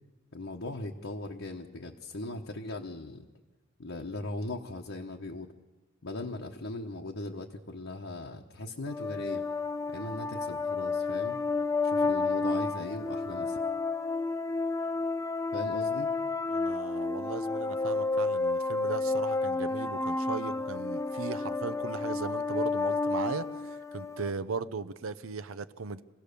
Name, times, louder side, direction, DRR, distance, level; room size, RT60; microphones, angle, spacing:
voice 1, 0.3-3.2 3.8-5.5 6.0-9.4 9.9-11.4 11.8-13.6 15.5-16.1, left 2 dB, 70° left, -1 dB, 1.1 m, -39 dB
sound 1, 8.9-24.3, left 3 dB, 15° left, 0.6 m, -31 dB
voice 2, 16.5-23.5 23.9-26.0, right 4 dB, 90° right, 11 dB, 0.8 m, -37 dB
26.0 x 16.5 x 6.8 m, 1.2 s
head